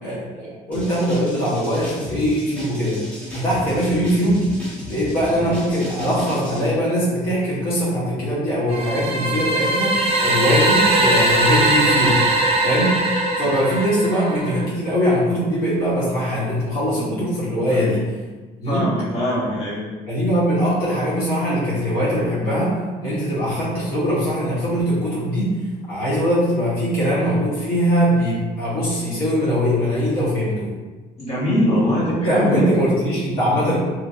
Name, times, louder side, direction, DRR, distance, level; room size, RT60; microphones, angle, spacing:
voice 1, 0.0-3.0 3.3-4.5 4.9-12.2 12.6-12.9 13.4-18.0 18.6-18.9 20.1-22.7 23.0-25.5 25.9-30.7 32.1-33.8, equal, 60° left, -9 dB, 1.2 m, -21 dB
Tiny Kick Break, 0.7-6.6, left 1 dB, 10° left, 1.2 m, -34 dB
sound 1, 8.7-14.6, right 2 dB, 35° right, 0.5 m, -20 dB
voice 2, 18.6-19.8 31.2-32.7, left 1 dB, 40° left, -8 dB, 1.3 m, -22 dB
3.0 x 2.7 x 2.5 m, 1.3 s
cardioid pair, 110°, 17 cm